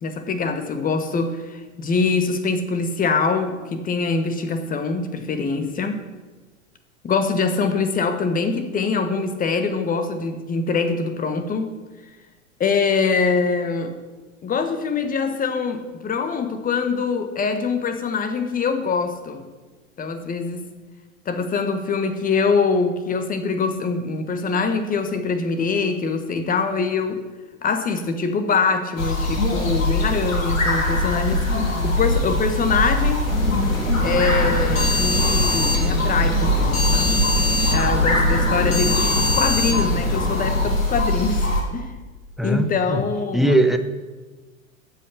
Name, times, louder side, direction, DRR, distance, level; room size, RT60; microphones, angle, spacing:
voice 1, 0.0-6.0 7.0-11.7 12.6-13.9 14.4-19.5 20.0-20.7 21.2-27.2 27.6-33.3 34.0-37.2 37.7-41.9 42.4-43.5, left 4 dB, 20° left, 1.3 m, -24 dB
sound 1, 29.0-41.6, left 1 dB, 75° left, 3.4 m, -22 dB
sound 2, 33.3-40.6, left 2 dB, 45° left, 4.3 m, -25 dB
voice 2, 42.4-43.1 43.3-43.8, right 1 dB, ahead, 0.7 m, -20 dB
14.5 x 5.6 x 8.3 m
figure-of-eight pair, 95°, 41 cm